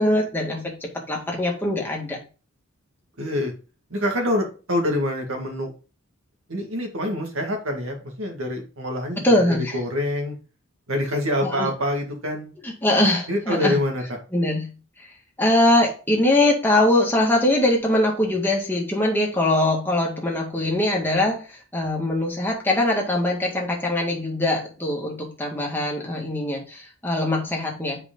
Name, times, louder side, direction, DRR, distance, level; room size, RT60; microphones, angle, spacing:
voice 1, 0.0-2.2 9.2-9.8 11.4-11.7 12.6-13.8 14.3-14.7 15.4-28.0, left 1 dB, 10° left, -1 dB, 1.9 m, -22 dB
voice 2, 3.2-3.5 3.9-5.7 6.5-10.3 10.9-12.5 13.3-14.0, left 1 dB, 65° right, 2 dB, 2.1 m, -26 dB
8.0 x 5.1 x 3.8 m, 0.34 s
head